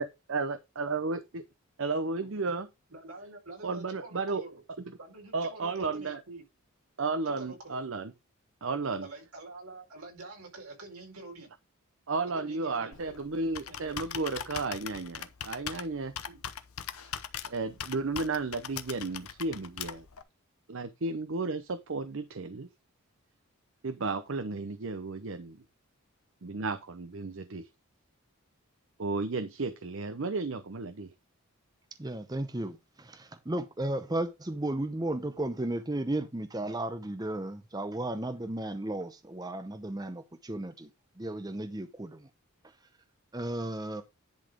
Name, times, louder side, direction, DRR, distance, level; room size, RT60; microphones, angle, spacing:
voice 1, 0.0-1.4 1.8-2.7 3.6-4.4 5.3-6.2 7.0-8.1 8.6-9.1 12.1-16.1 17.5-20.1 20.7-22.7 23.8-25.6 26.4-27.7 29.0-31.1, right 3 dB, 60° right, 0.7 m, -33 dB
voice 2, 2.9-4.6 5.0-6.4 7.2-7.8 9.0-11.5 12.3-13.1 13.7-14.2 15.1-15.2 16.2-16.4 17.4-17.5, right 2 dB, 80° right, 4.7 m, -47 dB
Computer keyboard, 12.9-20.2, left 8 dB, 75° left, 0.8 m, -41 dB
voice 3, 32.0-40.9 41.2-42.3 43.3-44.0, right 1 dB, 15° right, 0.6 m, -34 dB
10.5 x 4.1 x 5.1 m
head